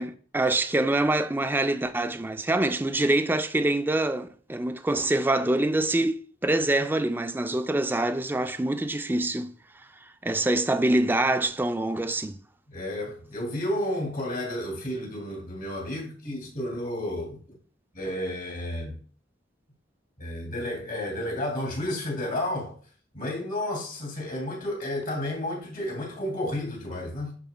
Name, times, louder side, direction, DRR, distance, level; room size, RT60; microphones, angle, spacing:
voice 1, 0.0-9.5 10.2-12.4, right 2 dB, 10° right, 0.4 m, -25 dB
voice 2, 12.7-17.4 17.9-19.0 20.2-22.8 23.1-27.3, left 1 dB, 50° left, 2.6 m, -31 dB
10.5 x 4.0 x 2.2 m
head